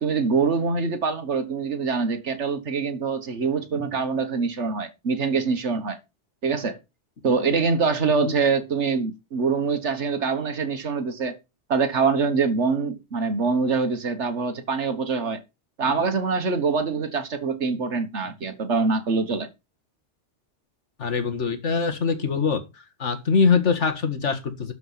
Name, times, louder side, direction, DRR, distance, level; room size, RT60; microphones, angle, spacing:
voice 1, 0.0-6.0 6.4-6.8 7.2-11.4 11.7-15.4 15.8-19.5, right 5 dB, 75° right, 1.8 m, -24 dB
voice 2, 21.0-22.6 23.0-24.7, left 5 dB, 85° left, 2.1 m, -23 dB
12.5 x 5.3 x 5.7 m
omnidirectional pair, 1.2 m